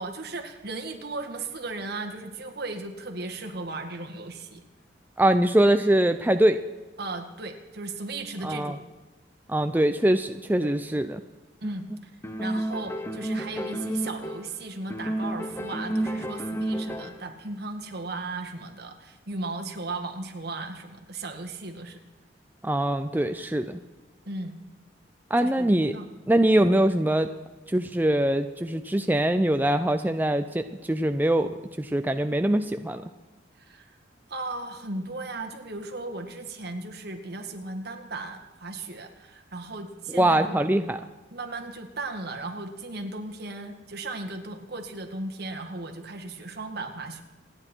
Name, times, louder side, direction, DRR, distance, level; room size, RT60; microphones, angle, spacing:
voice 1, 0.0-4.6 7.0-8.8 10.6-10.7 11.6-11.8 12.4-22.0 24.3-24.6 25.4-26.0 33.6-34.0 34.3-40.6 41.3-47.2, right 2 dB, 60° right, 4 dB, 2.0 m, -36 dB
voice 2, 5.2-6.6 8.4-8.8 9.5-11.2 22.6-23.8 25.3-26.0 26.3-27.3 27.7-31.5 31.8-33.0 40.1-41.0, right 1 dB, 10° right, 8 dB, 0.5 m, -23 dB
sound 1, 12.2-14.6 14.9-17.3, right 1 dB, 15° left, 0.9 m, -31 dB
28.0 x 10.0 x 4.5 m, 1.1 s
head